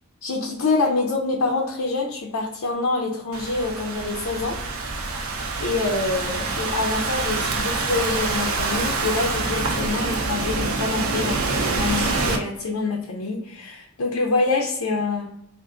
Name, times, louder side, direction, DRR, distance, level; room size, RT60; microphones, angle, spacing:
voice 1, 0.2-4.6 5.6-15.3, left 3 dB, 85° left, 0 dB, 0.6 m, -26 dB
Thunderstorm / Rain, 3.3-12.4, right 3 dB, 85° right, 0.6 m, -26 dB
3.6 x 2.5 x 3.6 m, 0.77 s
head